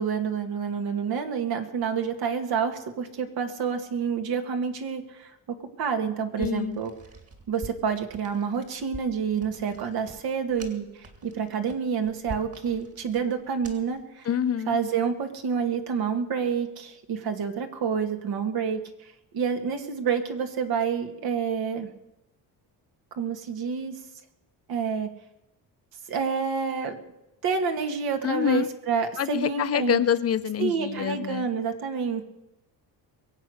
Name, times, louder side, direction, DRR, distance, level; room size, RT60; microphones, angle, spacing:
voice 1, 0.0-6.9 7.5-14.3 14.7-21.9 23.2-24.0 24.7-25.1 26.1-27.0 27.4-30.0 30.6-32.2, right 6 dB, 70° right, 6 dB, 2.1 m, -28 dB
voice 2, 6.4-6.8 14.2-14.8 28.2-28.7 29.2-31.5, left 9 dB, 40° left, 12 dB, 0.7 m, -26 dB
sound 1, 6.4-14.0, right 3 dB, 40° right, 2.7 m, -45 dB
22.5 x 8.2 x 6.5 m, 0.93 s
cardioid pair, 120°, 38 cm